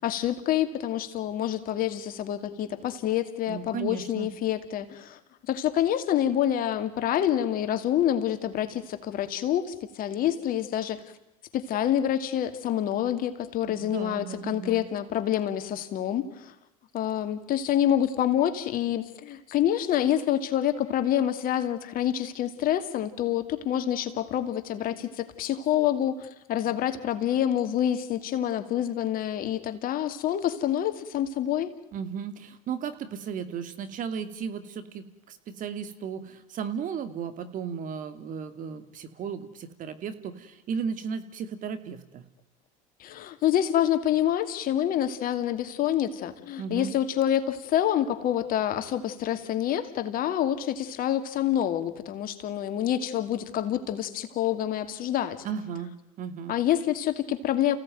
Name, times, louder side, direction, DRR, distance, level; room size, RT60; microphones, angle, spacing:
voice 1, 0.0-5.2 5.5-11.0 11.5-16.5 16.9-31.7 43.0-55.4 56.5-57.8, left 11 dB, 50° left, 9 dB, 2.5 m, -27 dB
voice 2, 3.5-4.3 13.6-14.8 31.9-42.2 46.6-46.9 55.4-56.6, right 7 dB, 45° right, 10 dB, 2.6 m, -35 dB
29.0 x 17.0 x 9.3 m, 0.92 s
hypercardioid pair, 85°, 18 cm